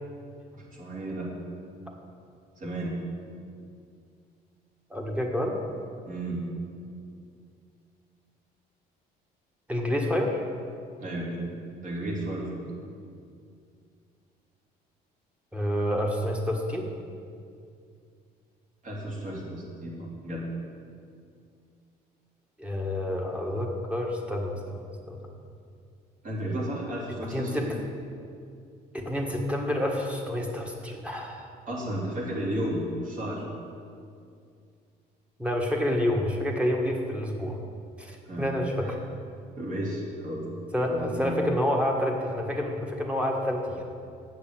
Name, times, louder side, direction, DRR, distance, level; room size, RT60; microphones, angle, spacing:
voice 1, 0.5-1.3 2.6-3.0 6.0-6.4 11.0-12.7 18.8-20.5 26.2-27.8 31.7-33.4 38.2-38.5 38.8-38.9 39.6-40.5 40.9-41.5, right 1 dB, 50° right, -4 dB, 3.1 m, -33 dB
voice 2, 4.9-5.6 9.7-10.4 15.5-16.9 22.6-25.2 27.3-27.7 28.9-31.5 35.4-37.6 38.0-39.0 40.7-43.9, left 1 dB, 5° right, 0 dB, 1.5 m, -28 dB
8.3 x 6.7 x 7.8 m, 2.4 s
cardioid pair, 110°, 17 cm